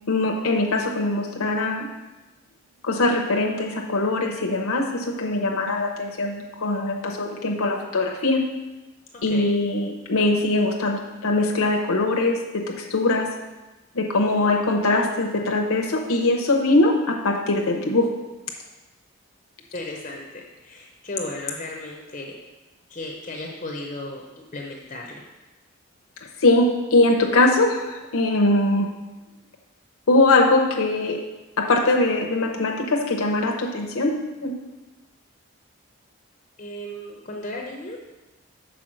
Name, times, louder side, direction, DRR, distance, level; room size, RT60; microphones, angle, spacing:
voice 1, 0.1-1.9 2.8-8.4 9.2-13.3 13.9-18.1 26.4-28.9 30.1-31.2 31.6-34.1 34.4-34.5, left 2 dB, 90° left, 1 dB, 0.8 m, -21 dB
voice 2, 14.1-14.6 19.7-22.4 22.9-25.2 36.6-38.1, left 1 dB, 35° left, 0 dB, 0.7 m, -35 dB
6.1 x 4.7 x 6.2 m, 1.1 s
head